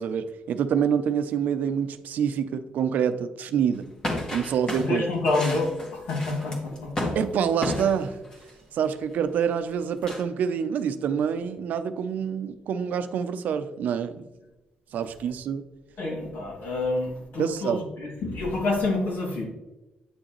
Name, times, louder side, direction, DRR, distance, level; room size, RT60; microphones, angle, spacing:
voice 1, 0.0-3.9 4.3-5.0 7.1-8.2 8.7-14.3 14.9-15.6 17.4-17.9, right 7 dB, 75° right, 10 dB, 0.6 m, -26 dB
sound 1, 4.0-8.5 10.0-10.2, left 1 dB, 25° left, 1.6 m, -32 dB
voice 2, 4.8-6.9 16.0-19.4, left 2 dB, 85° left, -2 dB, 2.5 m, -28 dB
9.2 x 6.3 x 3.1 m, 1.1 s
cardioid pair, 135°, 3 cm